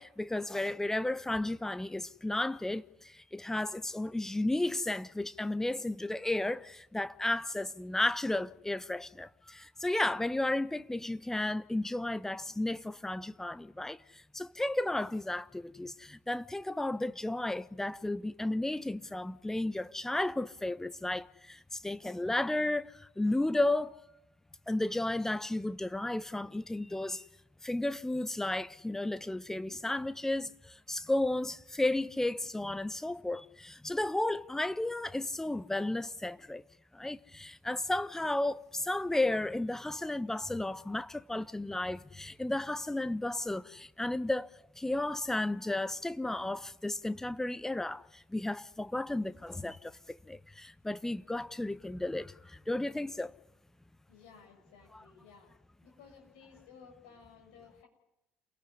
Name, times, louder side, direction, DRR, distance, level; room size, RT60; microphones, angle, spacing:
voice 1, 0.0-23.9 24.7-27.3 27.6-36.6 36.9-53.3 54.9-55.0, left 2 dB, 10° left, 1.1 m, -33 dB
voice 2, 54.1-55.5 55.8-57.9, left 6 dB, 70° left, 6.8 m, -56 dB
28.5 x 18.5 x 9.8 m
figure-of-eight pair, 55°, 5 cm